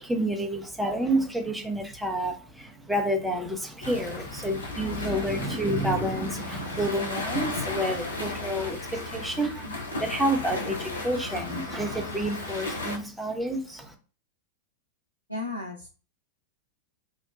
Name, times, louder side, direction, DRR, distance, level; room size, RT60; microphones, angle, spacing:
voice 1, 0.0-9.7 10.0-13.9, right 1 dB, 5° right, 3 dB, 0.5 m, -29 dB
sound 1, 3.8-13.0, left 2 dB, 75° left, 0.5 m, -35 dB
voice 2, 15.3-15.9, left 2 dB, 90° right, 0 dB, 0.4 m, -34 dB
2.7 x 2.1 x 2.4 m, 0.37 s
figure-of-eight pair, 90°, 0 cm